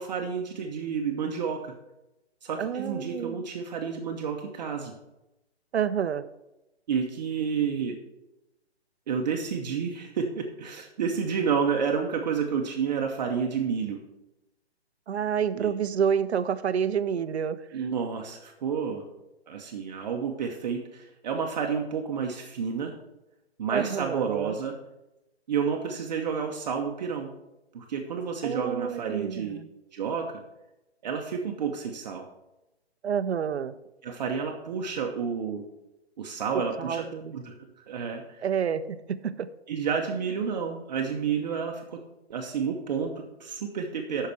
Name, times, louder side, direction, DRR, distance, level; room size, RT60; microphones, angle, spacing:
voice 1, 0.0-1.7 2.4-4.9 6.9-8.0 9.1-14.0 15.5-15.7 17.7-19.1 19.5-23.0 23.6-24.8 25.5-27.3 27.7-29.6 29.9-30.4 31.0-32.3 34.0-35.7 36.2-37.0 37.3-38.4 39.7-42.0 42.3-44.3, right 6 dB, 40° right, 2 dB, 0.9 m, -30 dB
voice 2, 2.6-3.4 5.7-6.2 15.1-17.6 23.7-24.6 28.4-29.7 33.0-33.7 36.8-37.4 38.4-39.5, right 7 dB, 70° right, 13 dB, 0.7 m, -28 dB
8.5 x 5.8 x 6.3 m, 0.94 s
hypercardioid pair, 150°, 33 cm